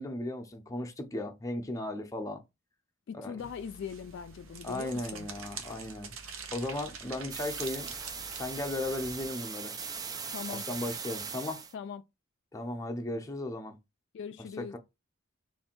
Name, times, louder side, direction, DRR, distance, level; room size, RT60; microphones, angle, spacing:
voice 1, 0.0-2.4 3.1-3.3 4.6-6.1 6.5-7.9 8.4-9.7 10.5-11.6 12.5-13.8 14.6-14.8, left 1 dB, 15° left, 0.6 m, -36 dB
voice 2, 3.1-5.3 10.3-10.6 11.7-12.0 14.1-14.7, left 7 dB, 60° left, 0.3 m, -41 dB
sound 1, 3.4-9.3, right 5 dB, 85° right, 0.8 m, -46 dB
sound 2, 7.3-11.7, right 5 dB, 20° right, 0.3 m, -39 dB
3.2 x 2.6 x 4.4 m
head